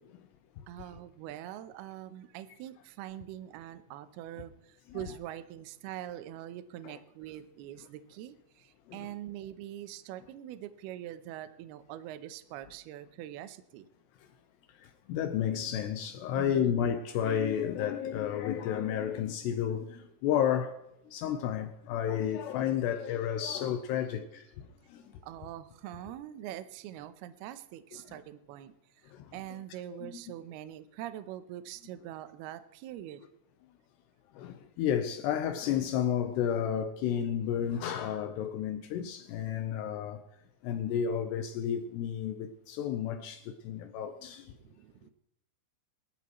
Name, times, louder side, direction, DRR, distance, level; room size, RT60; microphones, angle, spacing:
voice 1, 0.7-13.9 16.3-16.8 25.2-33.2 44.6-45.1, right 12 dB, 85° right, 2.2 m, -44 dB
voice 2, 14.7-20.8 21.1-25.0 29.1-29.4 29.9-30.1 34.3-40.2 40.6-44.5, left 9 dB, 80° left, 2.5 m, -32 dB
23.0 x 13.0 x 3.1 m
omnidirectional pair, 5.6 m